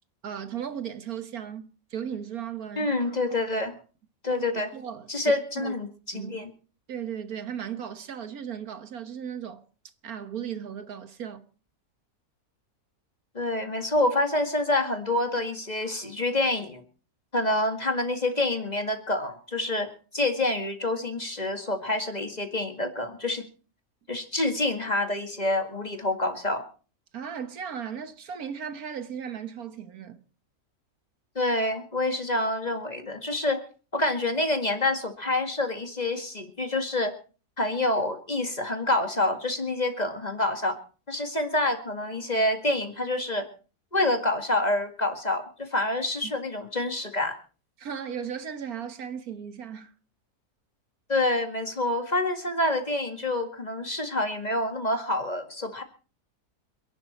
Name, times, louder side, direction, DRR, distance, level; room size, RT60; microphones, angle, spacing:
voice 1, 0.2-2.9 4.3-4.4 4.7-5.7 6.1-6.3 6.9-9.6 10.0-11.4 27.1-30.2 46.2-46.3 47.8-49.9, right 8 dB, 70° right, 1.7 m, -36 dB
voice 2, 2.8-3.7 4.2-4.7 5.1-6.5 13.3-16.8 17.3-23.5 24.1-26.6 31.4-33.6 33.9-37.2 37.6-40.8 41.1-43.5 43.9-47.4 51.1-55.8, left 2 dB, 25° left, 2.0 m, -27 dB
27.5 x 11.5 x 4.3 m
omnidirectional pair, 1.6 m